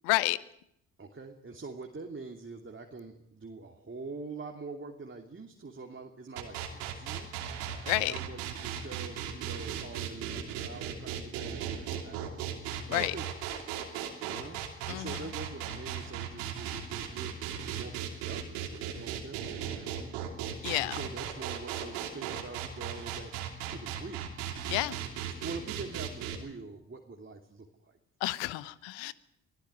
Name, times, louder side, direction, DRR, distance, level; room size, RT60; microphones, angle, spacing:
voice 1, 0.1-0.4 7.9-8.1 12.9-13.1 14.9-15.2 20.6-21.0 24.7-25.0 28.2-29.1, left 19 dB, 80° left, 1.0 m, -30 dB
voice 2, 1.0-7.3 8.0-12.5 12.9-13.5 14.3-24.3 25.4-28.0, right 3 dB, 30° right, 2.9 m, -45 dB
sound 1, 6.4-26.4, right 9 dB, 80° right, 3.0 m, -37 dB
24.5 x 15.5 x 9.7 m
hypercardioid pair, 50°, 42 cm